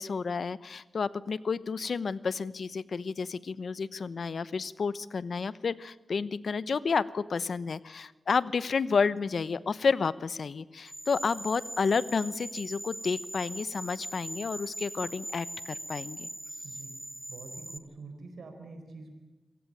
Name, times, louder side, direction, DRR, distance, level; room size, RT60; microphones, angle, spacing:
voice 1, 0.0-16.3, left 5 dB, 75° left, 17 dB, 0.9 m, -31 dB
sound 1, 10.9-17.8, right 1 dB, 20° right, 1.6 m, -41 dB
voice 2, 16.6-16.9 17.3-19.1, right 3 dB, 90° right, 5 dB, 4.3 m, -46 dB
26.0 x 16.0 x 9.0 m, 1.2 s
cardioid pair, 55°, 0 cm